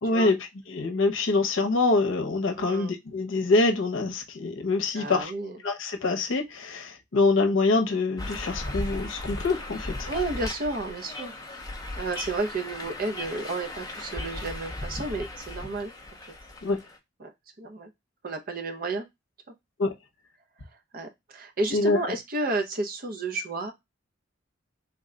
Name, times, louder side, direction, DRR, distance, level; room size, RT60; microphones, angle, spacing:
voice 1, 0.0-0.4 0.7-5.3 5.6-10.1 16.6-16.8 19.8-19.9 21.7-22.0, left 3 dB, 75° left, 0.7 m, -25 dB
voice 2, 2.6-2.9 4.9-5.6 10.1-11.3 12.0-15.9 17.2-17.3 17.6-17.9 18.2-19.0 20.9-23.7, right 2 dB, 45° right, 0.6 m, -31 dB
sound 1, 8.2-17.0, left 2 dB, 20° left, 0.6 m, -37 dB
3.5 x 2.2 x 3.6 m
head